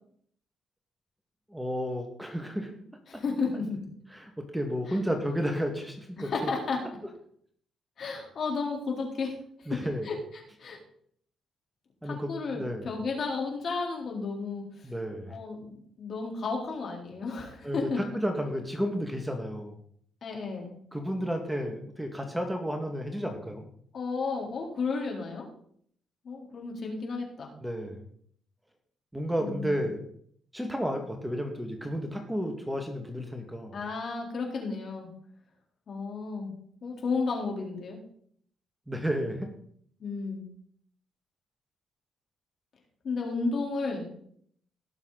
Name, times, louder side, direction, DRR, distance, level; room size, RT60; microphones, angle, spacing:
voice 1, 1.5-2.8 3.1-3.2 4.1-6.5 9.7-10.1 12.0-12.9 14.8-15.4 17.6-19.8 20.9-23.7 27.6-28.0 29.1-30.0 30.5-33.8 38.9-39.5, equal, 5° right, 3 dB, 2.0 m, -32 dB
voice 2, 3.1-3.8 4.9-5.0 6.2-6.8 8.0-9.3 9.6-9.8 10.0-10.2 10.6-10.8 12.0-14.6 15.3-18.0 20.2-20.7 23.9-25.5 26.2-27.5 29.4-29.8 33.7-35.1 35.9-36.5 36.8-38.0 40.0-40.5 43.0-44.1, left 4 dB, 55° left, 0 dB, 3.8 m, -33 dB
18.0 x 7.1 x 4.1 m, 0.62 s
cardioid pair, 90°, 0 cm